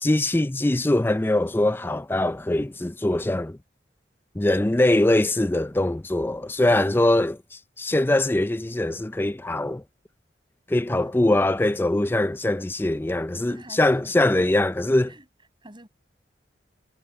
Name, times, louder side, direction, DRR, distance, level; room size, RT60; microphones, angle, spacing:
voice 1, 0.0-3.6 4.4-7.4 7.8-9.8 10.7-15.1, left 1 dB, 10° left, 0.4 m, -22 dB
voice 2, 13.3-14.5 15.1-15.3 15.6-15.9, right 1 dB, 25° right, 6.9 m, -47 dB
head